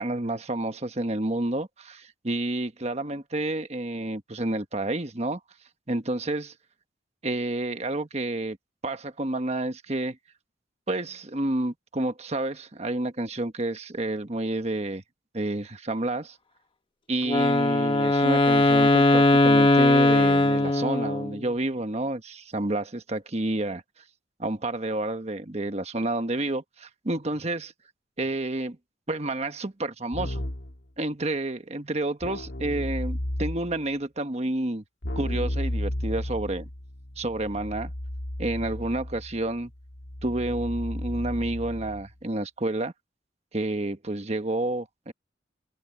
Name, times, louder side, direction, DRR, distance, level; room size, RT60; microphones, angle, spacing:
voice 1, 0.0-5.4 5.9-6.5 7.2-8.6 8.8-10.2 10.9-15.0 15.3-16.4 17.1-23.8 24.4-27.7 28.2-28.8 29.1-30.4 31.0-34.8 35.2-36.7 37.2-37.9 38.4-39.7 40.2-42.9 43.5-45.1, right 2 dB, 35° right, 1.3 m, -29 dB
Wind instrument woodwind instrument, 17.3-21.4, left 2 dB, 25° left, 1.1 m, -20 dB
Keyboard (musical), 30.1-30.8 32.2-33.8 35.0-42.1, left 1 dB, 70° left, 1.8 m, -33 dB
head